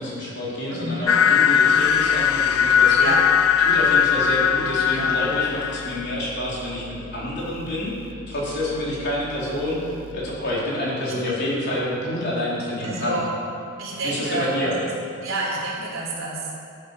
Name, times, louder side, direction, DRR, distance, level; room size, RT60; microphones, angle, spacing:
voice 1, 0.0-3.1 3.6-13.2 14.0-14.7, left 1 dB, 55° left, -6 dB, 4.4 m, -28 dB
voice 2, 0.7-1.2 3.0-3.2 4.9-5.1 11.0-11.1 12.8-13.3 13.8-14.9 15.2-16.6, right 2 dB, 70° right, -4 dB, 4.2 m, -29 dB
sound 1, 1.1-6.1, left 7 dB, 85° left, 0.6 m, -19 dB
sound 2, 1.7-10.4, right 1 dB, 30° right, 1.2 m, -42 dB
13.5 x 11.0 x 6.7 m, 2.5 s
head